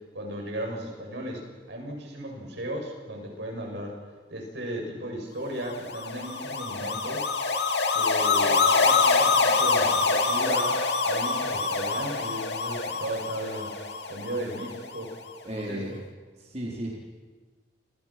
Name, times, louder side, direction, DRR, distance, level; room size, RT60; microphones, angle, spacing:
voice 1, 0.1-4.0 4.3-7.3 7.9-13.7 14.1-15.1 15.5-15.8, right 1 dB, 65° right, 1 dB, 8.0 m, -35 dB
sound 1, 5.7-15.0, left 4 dB, 60° left, 2.9 m, -25 dB
voice 2, 15.5-16.0 16.4-16.9, right 1 dB, 35° right, -3 dB, 4.4 m, -34 dB
30.0 x 29.0 x 6.2 m, 1.4 s
head